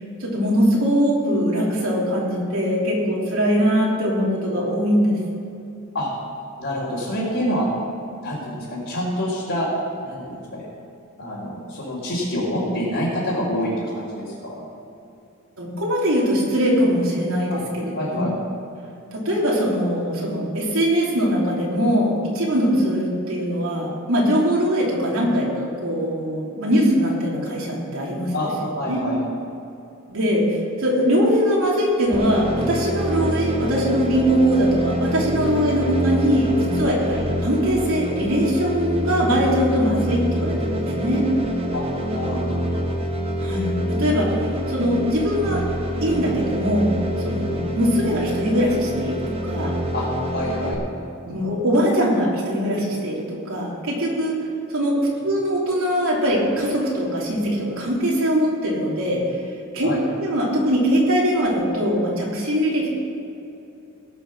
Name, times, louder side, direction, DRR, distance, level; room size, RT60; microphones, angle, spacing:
voice 1, 0.2-5.2 15.6-18.2 19.1-28.3 28.6-29.0 30.1-41.3 43.4-44.3 44.7-45.6 46.0-46.9 47.2-49.7 51.2-54.4 54.7-55.0 55.2-59.2 59.7-59.9 60.2-62.9, equal, 75° right, -4 dB, 3.2 m, -21 dB
voice 2, 6.6-7.7 8.2-9.7 10.0-10.6 11.2-14.5 17.5-17.6 17.9-18.3 28.3-29.2 41.7-42.8 49.9-50.8 59.8-60.0, equal, 60° left, -9 dB, 3.4 m, -27 dB
sound 1, 32.1-50.7, equal, 25° right, 1.2 m, -26 dB
18.5 x 6.2 x 6.3 m, 2.7 s
head